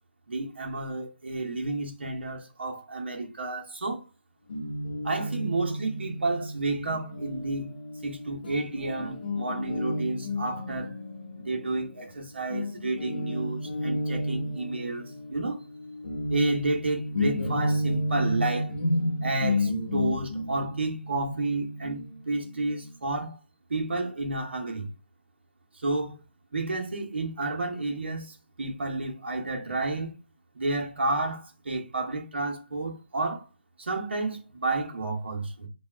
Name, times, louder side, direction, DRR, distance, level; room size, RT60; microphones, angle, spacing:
voice 1, 0.3-4.0 5.0-7.7 8.0-10.9 11.4-15.6 16.3-18.7 19.2-23.4 23.7-24.9 25.7-26.1 26.5-30.1 30.5-33.5 33.8-35.7, right 2 dB, 75° right, 1.3 m, -31 dB
Guitar, 4.5-12.2 12.5-22.9, left 1 dB, 60° left, 1.2 m, -32 dB
3.3 x 2.4 x 4.3 m
hypercardioid pair, 165°, 6 cm